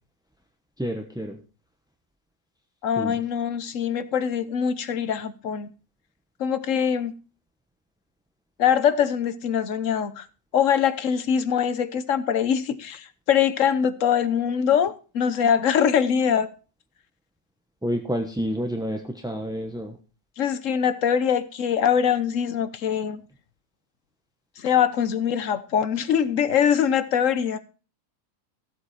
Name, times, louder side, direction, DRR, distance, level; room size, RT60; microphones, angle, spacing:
voice 1, 0.8-1.4 3.0-3.2 17.8-20.0, equal, 5° right, 0.8 m, -29 dB
voice 2, 2.8-5.7 6.4-7.1 8.6-10.3 10.5-16.5 20.4-23.2 24.6-27.6, left 8 dB, 55° left, 1.2 m, -23 dB
15.0 x 8.2 x 4.2 m
omnidirectional pair, 1.7 m